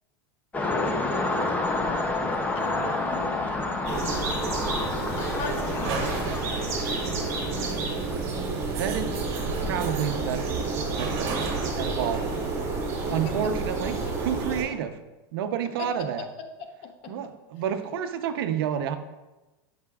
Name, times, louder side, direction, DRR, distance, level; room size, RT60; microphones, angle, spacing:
sound 1, 0.5-8.2, left 2 dB, 15° left, 0.7 m, -29 dB
voice 1, 2.5-3.8 4.9-6.2 15.8-15.9 17.0-17.1, left 5 dB, 50° left, 5 dB, 1.0 m, -36 dB
sound 2, 3.8-14.6, right 3 dB, 25° right, 2.2 m, -30 dB
sound 3, 5.0-14.5, right 4 dB, 45° right, 1.6 m, -37 dB
voice 2, 8.4-9.2 9.7-11.4 11.7-12.4 13.1-14.9 15.3-16.2 17.1-19.0, right 9 dB, 75° right, 8 dB, 0.8 m, -30 dB
12.0 x 5.9 x 2.4 m, 1.1 s
supercardioid pair, 140°, 12 cm